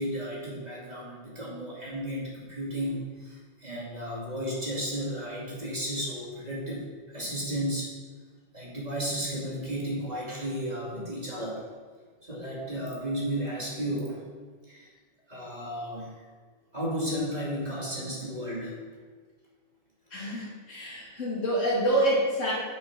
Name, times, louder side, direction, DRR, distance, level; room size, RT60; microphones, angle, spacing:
voice 1, 0.0-6.8 7.1-7.9 8.5-11.6 12.2-14.2 14.7-14.9 15.3-16.2 16.7-18.8, equal, 20° right, -5 dB, 2.4 m, -33 dB
voice 2, 20.1-22.5, right 1 dB, 35° left, -5 dB, 2.7 m, -27 dB
8.7 x 6.2 x 6.1 m, 1.5 s
omnidirectional pair, 2.3 m